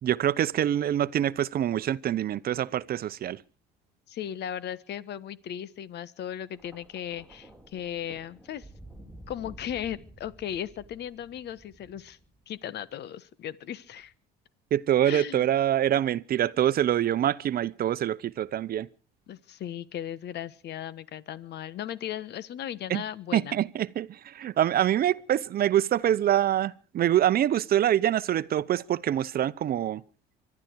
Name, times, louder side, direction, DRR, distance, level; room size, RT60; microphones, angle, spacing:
voice 1, 0.0-3.4 14.7-18.9 22.9-23.0 23.3-30.0, right 11 dB, 45° right, 0.8 m, -25 dB
voice 2, 4.1-8.7 9.3-12.2 12.5-14.1 15.0-15.5 19.3-23.6, left 10 dB, 55° left, 1.3 m, -37 dB
Thunder, 6.5-12.9 13.9-14.1, right 1 dB, ahead, 4.0 m, -51 dB
25.0 x 12.0 x 4.7 m
supercardioid pair, 80°, 21 cm